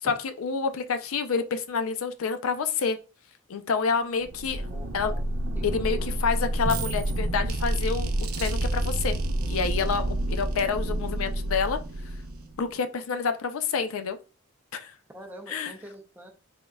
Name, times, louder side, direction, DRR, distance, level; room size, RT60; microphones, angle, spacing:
voice 1, 0.0-3.0 3.5-4.7 4.9-5.1 5.6-9.2 9.5-11.8 12.6-14.2 14.7-14.9 15.5-15.7, left 5 dB, 75° left, 0.4 m, -28 dB
sound 1, 4.2-12.7, right 1 dB, 85° right, 0.6 m, -29 dB
voice 2, 4.7-5.3 5.5-6.0 15.1-16.3, equal, 10° right, 0.5 m, -44 dB
4.0 x 3.6 x 2.3 m
head